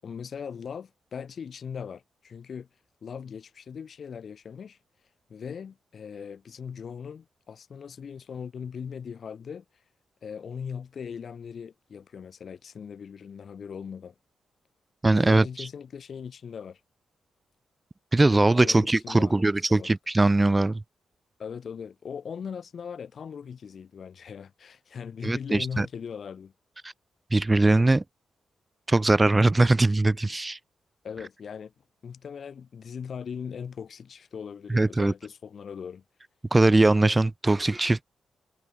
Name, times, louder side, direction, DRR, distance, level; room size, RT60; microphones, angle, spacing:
voice 1, 0.0-2.7 3.0-4.8 5.3-9.6 10.2-14.1 15.2-16.8 18.2-19.9 21.4-26.5 31.0-31.7 32.0-36.0, left 7 dB, 60° left, 6.3 m, -39 dB
voice 2, 15.0-15.7 18.1-20.8 25.2-25.9 26.8-26.9 27.3-28.0 28.9-30.6 34.7-35.1 36.5-38.0, right 2 dB, 25° right, 0.7 m, -21 dB
hypercardioid pair, 40°, 0 cm